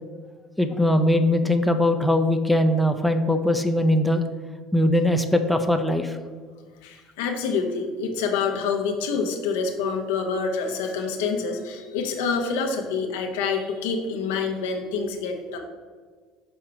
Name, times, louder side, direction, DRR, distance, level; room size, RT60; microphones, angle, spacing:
voice 1, 0.6-4.2 4.7-6.2, left 1 dB, ahead, 5 dB, 0.5 m, -21 dB
voice 2, 6.8-15.6, left 5 dB, 90° left, 4 dB, 0.8 m, -27 dB
6.2 x 3.7 x 4.6 m, 1.6 s
supercardioid pair, 95°, 0 cm